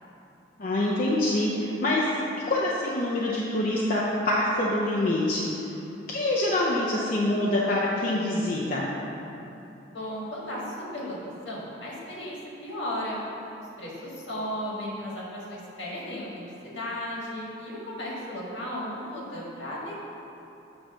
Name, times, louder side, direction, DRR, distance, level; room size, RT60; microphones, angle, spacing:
voice 1, 0.6-2.1 2.5-5.5 6.1-8.9, left 1 dB, 45° left, -6 dB, 0.6 m, -25 dB
voice 2, 9.9-13.2 13.8-20.0, left 1 dB, 70° left, -5 dB, 1.6 m, -35 dB
8.0 x 3.1 x 6.2 m, 2.9 s
head